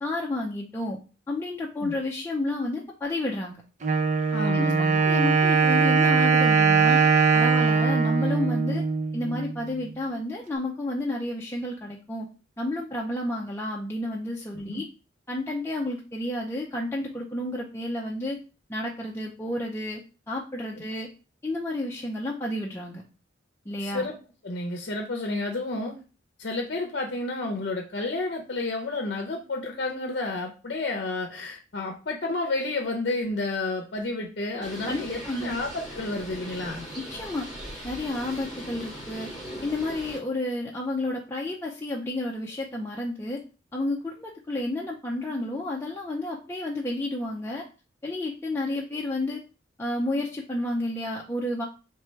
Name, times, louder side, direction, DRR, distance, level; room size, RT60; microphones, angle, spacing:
voice 1, 0.0-1.0 1.3-3.6 4.5-7.0 7.3-8.8 9.1-12.3 12.6-14.9 15.3-18.4 18.7-20.0 20.3-21.1 21.4-23.0 23.7-24.1 34.9-35.6 37.0-37.5 37.8-39.3 39.6-43.4 43.7-47.6 48.0-49.4 49.8-51.7, left 1 dB, 15° left, -2 dB, 0.5 m, -31 dB
Wind instrument woodwind instrument, 3.8-9.5, right 5 dB, 40° right, 0.5 m, -21 dB
voice 2, 4.3-5.0 14.7-14.8 23.8-24.1 24.4-25.9 26.4-36.9, left 2 dB, 55° left, 2 dB, 0.6 m, -31 dB
Bird, 34.6-40.2, equal, 20° right, 1.7 m, -39 dB
3.3 x 3.2 x 4.5 m, 0.34 s
head